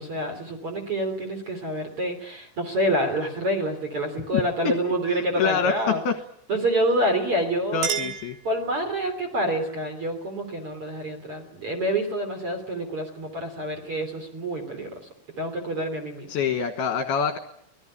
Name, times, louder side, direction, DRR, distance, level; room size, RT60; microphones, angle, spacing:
voice 1, 0.0-6.0 6.5-8.1 8.4-15.0 15.4-16.3, right 1 dB, 35° right, 5 dB, 3.3 m, -27 dB
voice 2, 4.3-4.7 5.4-5.7 6.1-6.2 7.7-8.4 16.3-17.4, left 6 dB, 70° left, 7 dB, 2.8 m, -25 dB
Chink clink, 7.2-9.1, right 6 dB, 85° right, 5.6 m, -33 dB
24.5 x 18.0 x 9.9 m, 0.74 s
omnidirectional pair, 5.7 m